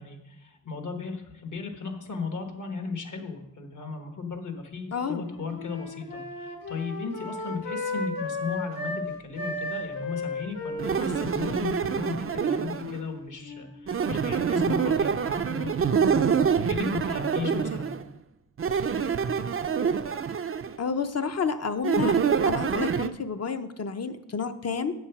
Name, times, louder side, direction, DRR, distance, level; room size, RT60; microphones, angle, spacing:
voice 1, 0.0-16.4 16.7-17.9, left 4 dB, 65° left, 5 dB, 1.4 m, -36 dB
voice 2, 4.9-5.3 20.8-22.2 22.4-24.9, left 5 dB, 50° left, 9 dB, 0.7 m, -30 dB
Wind instrument woodwind instrument, 5.0-9.1 9.4-13.8, left 2 dB, 80° left, 1.8 m, -35 dB
sound 1, 10.8-13.0 13.9-18.0 18.6-20.8 21.8-23.1, right 6 dB, 40° right, 0.4 m, -26 dB
7.9 x 7.2 x 5.9 m, 0.87 s
wide cardioid pair, 120°, 33 cm